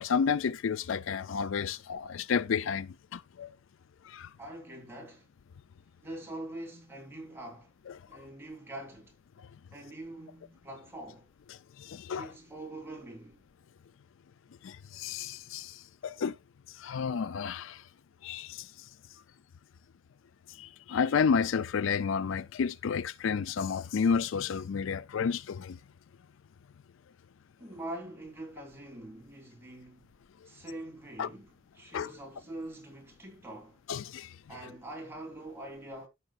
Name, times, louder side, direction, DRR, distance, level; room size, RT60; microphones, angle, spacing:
voice 1, 0.0-3.5 4.0-4.3 7.9-8.0 11.5-12.3 14.6-16.4 16.7-17.8 18.2-18.9 20.5-25.8 31.2-31.3 31.9-32.1 33.9-34.4, left 6 dB, 70° left, 0.4 m, -31 dB
voice 2, 4.4-5.3 6.0-7.7 8.1-9.1 9.7-11.3 12.1-13.4 27.6-30.2 30.5-33.8 34.5-36.1, right 1 dB, 10° right, 3.8 m, -44 dB
14.0 x 6.2 x 2.5 m
head